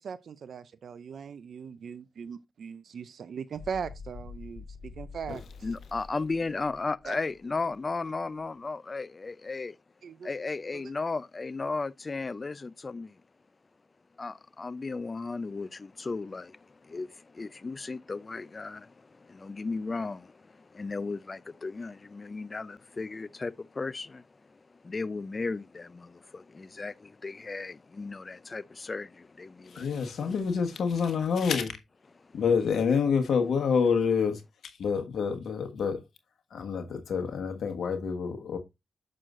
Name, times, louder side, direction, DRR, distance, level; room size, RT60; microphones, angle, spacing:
voice 1, 0.0-5.4 7.1-7.2 10.0-10.3 10.7-10.8, right 6 dB, 70° right, 0.4 m, -39 dB
sound 1, 3.5-7.8, left 4 dB, 5° left, 4.6 m, -46 dB
voice 2, 5.6-9.8 10.2-13.2 14.2-30.0 32.2-32.4, left 3 dB, 35° left, 0.5 m, -35 dB
voice 3, 29.7-31.7 32.3-36.0 36.5-38.6, left 6 dB, 75° left, 1.4 m, -27 dB
7.5 x 6.3 x 2.5 m
cardioid pair, 60°, 0 cm